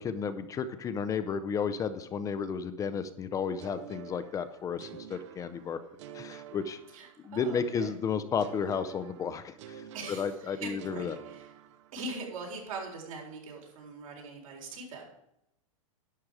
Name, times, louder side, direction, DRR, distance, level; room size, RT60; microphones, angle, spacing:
voice 1, 0.0-5.8 6.1-6.8 7.2-11.2, left 6 dB, 20° left, 11 dB, 0.5 m, -33 dB
sound 1, 3.6-7.5 8.4-12.3, right 9 dB, 60° right, 0.9 m, -49 dB
voice 2, 6.9-8.0 9.9-11.5 11.9-15.0, right 3 dB, 80° right, -1 dB, 4.1 m, -42 dB
11.0 x 7.2 x 4.9 m, 0.82 s
hypercardioid pair, 130°, 18 cm